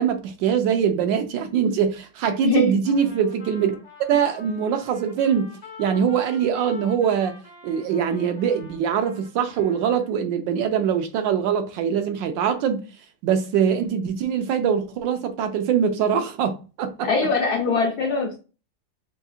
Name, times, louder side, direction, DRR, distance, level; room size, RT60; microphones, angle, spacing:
voice 1, 0.0-3.8 4.1-5.5 5.8-7.4 7.6-12.8 13.2-17.1, right 7 dB, 75° right, 1.2 m, -23 dB
voice 2, 2.4-2.8 17.0-18.4, left 3 dB, 70° left, 1.0 m, -22 dB
Trumpet, 2.8-10.2, left 4 dB, 30° left, 0.8 m, -46 dB
5.5 x 2.4 x 2.3 m
omnidirectional pair, 2.2 m